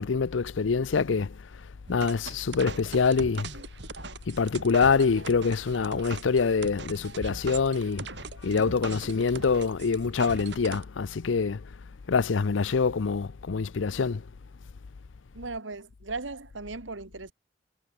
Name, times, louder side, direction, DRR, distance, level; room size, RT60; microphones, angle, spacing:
voice 1, 0.0-1.3 1.9-3.5 4.3-8.1 8.4-11.6 12.1-14.2, left 5 dB, 85° left, 0.6 m, -25 dB
sound 1, 1.9-10.8, right 4 dB, 65° right, 1.9 m, -40 dB
voice 2, 15.3-17.3, right 3 dB, 90° right, 1.8 m, -37 dB
head